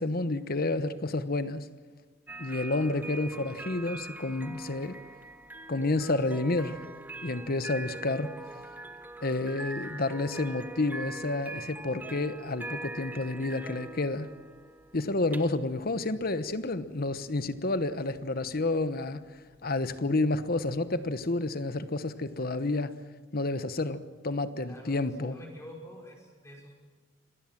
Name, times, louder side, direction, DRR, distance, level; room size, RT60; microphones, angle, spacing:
voice 1, 0.0-1.7 2.4-5.0 5.7-6.8 7.2-8.3 9.2-14.3 14.9-19.2 19.6-23.0 23.3-25.4, left 2 dB, 55° left, 1.1 m, -30 dB
sound 1, 2.3-21.3, right 2 dB, 10° right, 0.9 m, -43 dB
voice 2, 24.6-26.7, equal, 15° left, 5.7 m, -48 dB
26.0 x 19.0 x 7.4 m
head